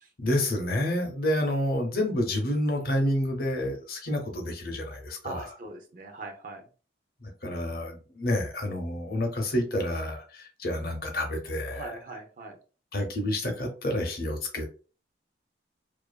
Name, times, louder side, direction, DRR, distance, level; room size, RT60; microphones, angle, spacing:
voice 1, 0.2-5.5 7.2-12.0 12.9-14.7, left 1 dB, 50° left, 4 dB, 0.6 m, -29 dB
voice 2, 5.2-6.6 11.7-12.6, right 3 dB, 45° right, 4 dB, 0.5 m, -41 dB
2.6 x 2.4 x 2.2 m, 0.36 s
head